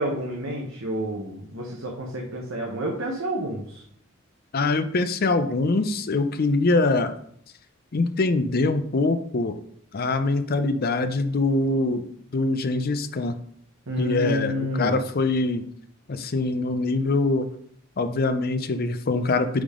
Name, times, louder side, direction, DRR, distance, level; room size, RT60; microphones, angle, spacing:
voice 1, 0.0-3.8 13.9-15.0, equal, 80° right, -1 dB, 1.1 m, -29 dB
voice 2, 4.5-7.1 7.9-9.6 9.9-13.4 14.0-15.6 16.1-17.5 18.0-19.6, left 3 dB, 45° left, 10 dB, 0.5 m, -23 dB
8.5 x 3.6 x 3.7 m, 0.67 s
head